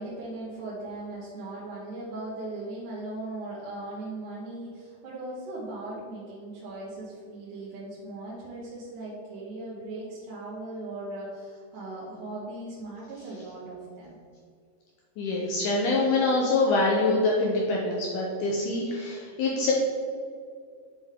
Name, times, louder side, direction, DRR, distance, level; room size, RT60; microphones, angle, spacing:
voice 1, 0.0-14.2, right 2 dB, 70° right, -7 dB, 2.6 m, -38 dB
voice 2, 15.2-19.7, left 2 dB, 75° left, -2 dB, 2.0 m, -25 dB
7.4 x 5.2 x 3.6 m, 2.2 s
omnidirectional pair, 4.0 m